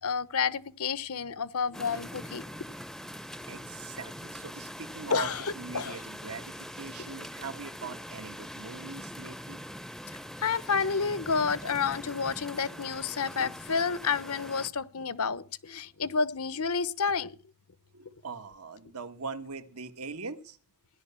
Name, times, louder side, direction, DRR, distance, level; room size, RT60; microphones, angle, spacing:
voice 1, 0.0-2.4 5.1-6.0 10.4-17.4, left 5 dB, 75° left, 1.0 m, -30 dB
sound 1, 1.7-14.7, equal, ahead, 0.6 m, -43 dB
voice 2, 3.5-5.3 5.5-9.6 17.9-20.6, right 4 dB, 80° right, 1.5 m, -41 dB
16.0 x 11.0 x 6.9 m
head